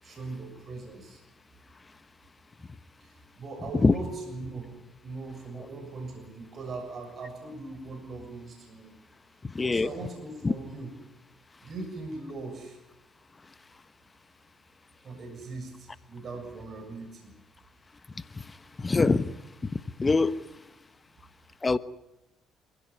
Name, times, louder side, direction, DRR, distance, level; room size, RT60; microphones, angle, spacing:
voice 1, 0.0-1.2 3.0-4.8 5.0-8.9 9.5-10.9 11.6-12.8 15.0-17.3, right 3 dB, 50° right, 7.0 m, -40 dB
voice 2, 9.5-9.9 10.4-10.5 18.8-19.3 19.6-19.7 20.0-20.3 21.6-21.8, left 3 dB, 25° left, 1.1 m, -23 dB
27.5 x 16.0 x 9.8 m
hypercardioid pair, 60°, 0 cm